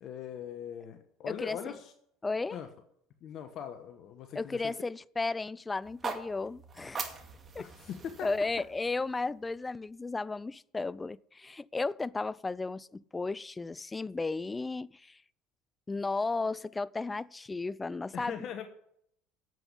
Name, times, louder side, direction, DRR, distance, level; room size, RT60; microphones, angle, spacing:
voice 1, 0.0-1.9 2.5-2.7 3.2-4.7 7.6-8.3 18.1-18.7, left 8 dB, 55° left, 1.1 m, -41 dB
voice 2, 1.3-1.6 2.2-2.6 4.4-7.0 7.5-7.7 8.2-15.2 15.9-18.7, left 3 dB, 20° left, 0.4 m, -34 dB
sound 1, 5.8-10.0, right 5 dB, 35° right, 2.1 m, -42 dB
9.2 x 8.0 x 8.4 m
hypercardioid pair, 80°, 0 cm